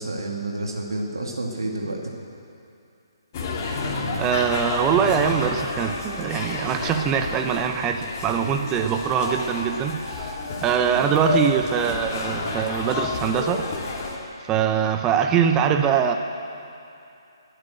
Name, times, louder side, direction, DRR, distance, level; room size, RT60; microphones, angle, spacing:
voice 1, 0.0-2.0 10.9-11.1, right 2 dB, 70° right, 0 dB, 2.1 m, -29 dB
sound 1, 3.3-14.2, left 3 dB, 35° left, 2.4 m, -30 dB
voice 2, 4.2-10.4 10.6-13.7 14.4-16.1, right 8 dB, 20° right, 6 dB, 0.7 m, -23 dB
20.0 x 9.0 x 8.0 m, 2.6 s
figure-of-eight pair, 140°, 2 cm